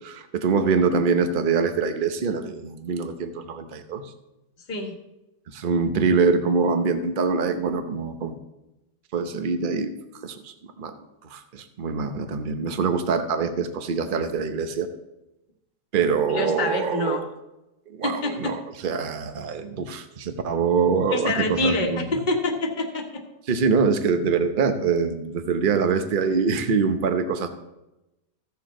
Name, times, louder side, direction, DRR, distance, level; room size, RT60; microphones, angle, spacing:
voice 1, 0.0-4.0 5.5-8.4 9.1-9.9 10.2-10.9 11.3-14.9 15.9-17.2 17.9-22.1 23.5-27.5, right 5 dB, 45° right, 8 dB, 0.6 m, -24 dB
voice 2, 16.3-17.2 18.0-18.5 21.1-23.2, left 2 dB, 25° left, 1 dB, 1.4 m, -26 dB
15.0 x 7.2 x 3.9 m, 0.94 s
omnidirectional pair, 2.0 m